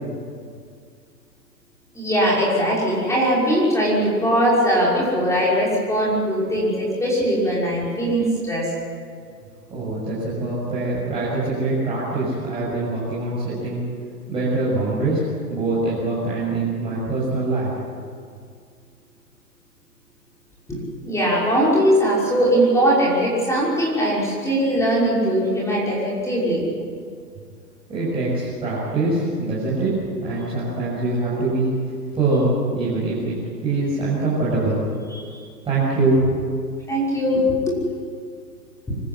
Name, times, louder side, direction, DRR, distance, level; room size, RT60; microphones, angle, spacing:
voice 1, 1.9-8.7 20.7-26.6 35.1-35.4 36.9-37.8, equal, 5° left, -6 dB, 5.8 m, -20 dB
voice 2, 9.7-13.8 14.3-18.0 27.9-31.7 32.1-33.4 33.6-34.8 35.6-36.4, right 2 dB, 10° right, -9 dB, 6.9 m, -23 dB
25.5 x 14.5 x 9.8 m, 2.1 s
hypercardioid pair, 140°, 50 cm